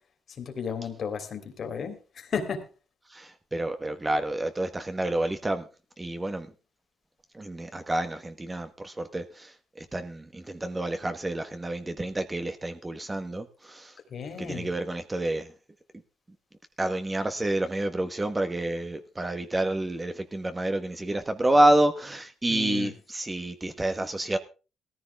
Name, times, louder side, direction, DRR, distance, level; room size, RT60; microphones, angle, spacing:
voice 1, 0.4-2.6 14.1-14.7 22.5-22.9, left 6 dB, 55° left, 3.2 m, -34 dB
voice 2, 3.1-5.6 6.0-6.5 7.3-14.0 14.4-15.5 16.8-24.4, right 1 dB, 20° right, 1.3 m, -28 dB
17.0 x 14.5 x 3.5 m
cardioid pair, 90°, 0 cm